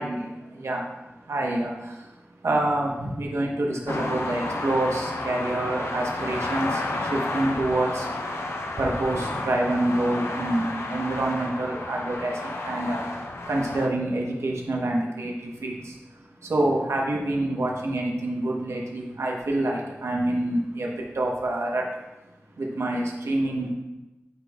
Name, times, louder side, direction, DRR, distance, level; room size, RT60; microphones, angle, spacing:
voice 1, 0.0-8.1 8.4-22.3 22.6-23.7, right 1 dB, 85° right, -1 dB, 1.1 m, -27 dB
sound 1, 3.9-13.9, left 2 dB, 75° left, 0.7 m, -31 dB
11.5 x 4.5 x 2.4 m, 1.0 s
wide cardioid pair, 75°, 5 cm